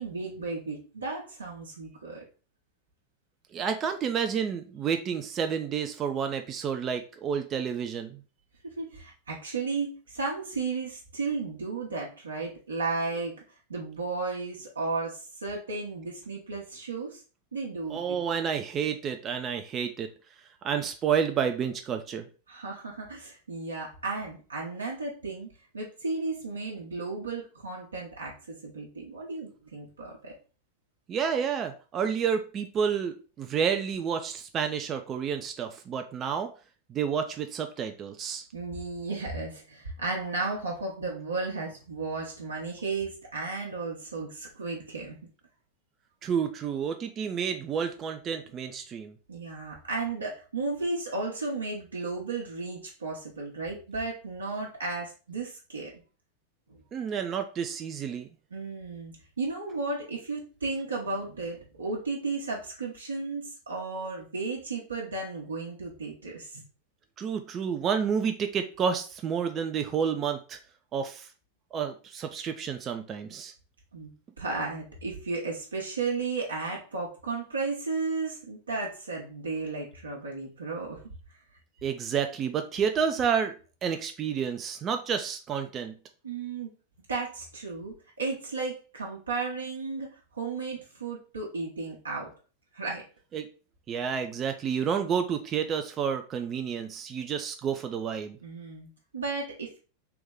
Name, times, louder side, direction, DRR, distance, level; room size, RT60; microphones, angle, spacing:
voice 1, 0.0-2.2 8.6-13.4 13.7-17.2 17.5-18.2 22.5-30.3 38.5-45.2 49.3-55.9 58.5-66.6 73.9-74.1 74.4-81.0 86.2-86.7 87.1-90.1 90.3-92.3 92.7-93.0 98.4-99.8, right 3 dB, 75° right, -2 dB, 0.9 m, -34 dB
voice 2, 3.5-8.2 17.9-20.1 20.6-22.3 31.1-36.5 36.9-38.4 46.2-49.1 56.9-58.3 67.2-70.6 70.9-71.3 71.7-73.5 81.8-83.5 83.8-85.9 93.3-93.5 93.9-98.4, right 7 dB, 30° right, 6 dB, 0.4 m, -30 dB
3.5 x 3.0 x 3.6 m, 0.36 s
figure-of-eight pair, 90°, 0 cm